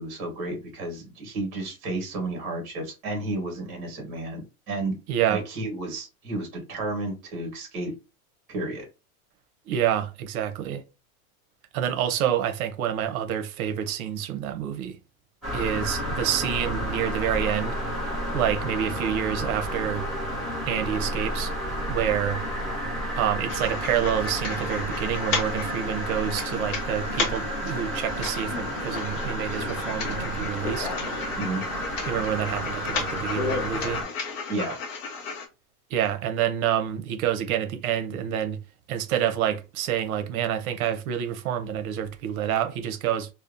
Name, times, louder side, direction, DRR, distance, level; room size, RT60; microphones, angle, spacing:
voice 1, 0.0-5.0 5.3-7.9 8.5-8.9 31.3-31.6 34.5-34.8, right 2 dB, 35° right, 1.2 m, -32 dB
voice 2, 5.1-5.4 9.7-10.8 11.7-15.0 15.5-17.8 18.3-20.1 20.7-21.5 21.9-22.4 23.1-30.9 32.1-34.0 35.9-38.6 38.9-43.3, right 10 dB, 70° right, 0.7 m, -28 dB
sound 1, 15.4-34.0, equal, ahead, 0.8 m, -31 dB
sound 2, 23.5-35.5, left 5 dB, 60° left, 0.7 m, -34 dB
2.7 x 2.1 x 2.4 m
supercardioid pair, 170°, 44 cm